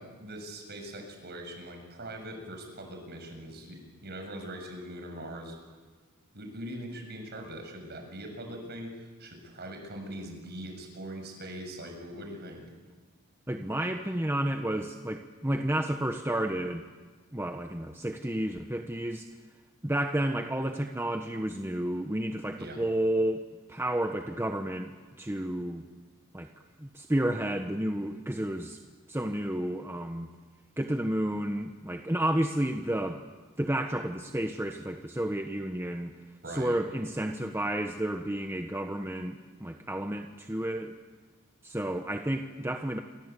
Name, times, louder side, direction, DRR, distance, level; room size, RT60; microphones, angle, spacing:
voice 1, 0.0-5.6 6.3-12.7 22.6-22.8 36.4-36.8, right 1 dB, 50° right, 3 dB, 7.1 m, -41 dB
voice 2, 13.5-16.8 17.3-19.3 19.8-23.4 23.7-25.8 26.3-26.5 26.8-28.8 29.1-30.3 30.8-33.2 33.6-36.1 36.5-40.9 41.6-43.0, right 1 dB, 10° right, 5 dB, 1.1 m, -31 dB
28.0 x 24.0 x 8.3 m, 1.4 s
head